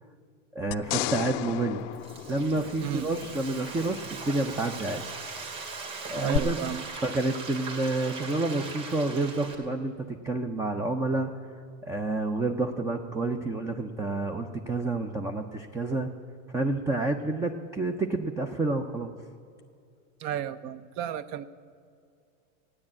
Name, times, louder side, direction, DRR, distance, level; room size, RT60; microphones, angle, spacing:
voice 1, 0.5-1.8 2.3-5.0 6.1-6.6 7.0-9.9 10.2-11.3 11.8-16.1 16.5-19.1, right 2 dB, 10° right, 5 dB, 0.4 m, -29 dB
sound 1, 0.7-3.2 6.3-6.4, left 19 dB, 50° left, 0.4 m, -33 dB
Frying (food), 1.7-9.6, right 4 dB, 85° right, 2.7 m, -40 dB
voice 2, 6.2-6.9 20.2-21.5, right 10 dB, 45° right, 15 dB, 0.7 m, -33 dB
14.5 x 9.7 x 8.6 m, 2.3 s
supercardioid pair, 135°, 39 cm